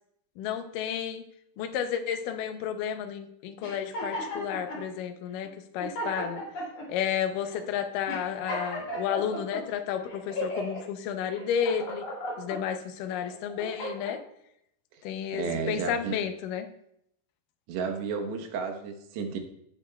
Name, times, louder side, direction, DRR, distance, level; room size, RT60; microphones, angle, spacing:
voice 1, 0.4-1.2 1.6-6.4 6.9-12.1 12.4-14.2 15.0-16.7, left 8 dB, 80° left, 6 dB, 1.9 m, -32 dB
sound 1, 3.6-4.8 5.4-5.5 5.8-6.9 7.4-7.6 8.1-9.6 10.1-10.8 11.3-12.6 13.1-14.2, equal, 45° left, 3.4 m, -35 dB
voice 2, 15.3-16.2 17.7-19.4, right 5 dB, 90° right, 4 dB, 3.3 m, -32 dB
16.0 x 7.2 x 2.3 m, 0.74 s
omnidirectional pair, 4.8 m